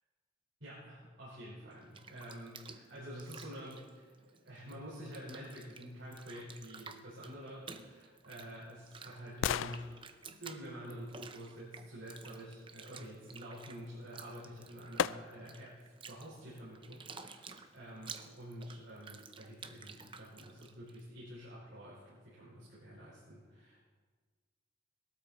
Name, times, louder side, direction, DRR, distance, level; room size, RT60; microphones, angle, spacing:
voice 1, 0.6-9.9 10.4-23.8, equal, 75° right, -8 dB, 5.2 m, -48 dB
Bathtub (filling or washing), 1.7-4.7 5.0-21.0, right 5 dB, 25° right, 0.6 m, -52 dB
sound 1, 8.0-12.0 14.1-14.2 15.0-15.7 16.2-16.3, left 9 dB, 80° left, 0.3 m, -40 dB
19.0 x 13.0 x 4.4 m, 1.5 s
head